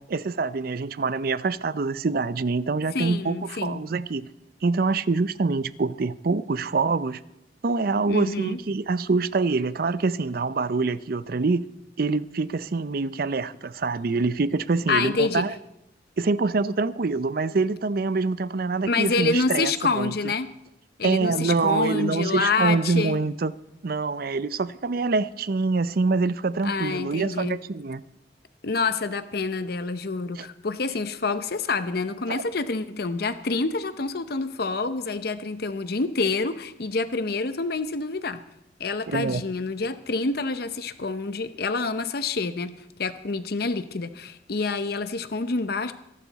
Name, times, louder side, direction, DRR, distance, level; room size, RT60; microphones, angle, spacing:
voice 1, 0.1-4.3 4.6-7.2 7.6-11.7 12.0-15.5 16.2-20.1 21.0-23.5 23.8-28.0 30.4-30.5 32.3-32.4 39.1-39.4, right 3 dB, 55° right, 0.5 m, -25 dB
voice 2, 2.9-3.8 8.1-8.6 14.9-15.5 18.8-20.5 21.0-23.2 26.6-27.6 28.6-38.4 38.8-42.7 43.0-45.9, left 4 dB, 55° left, 0.7 m, -27 dB
23.0 x 11.5 x 4.1 m
head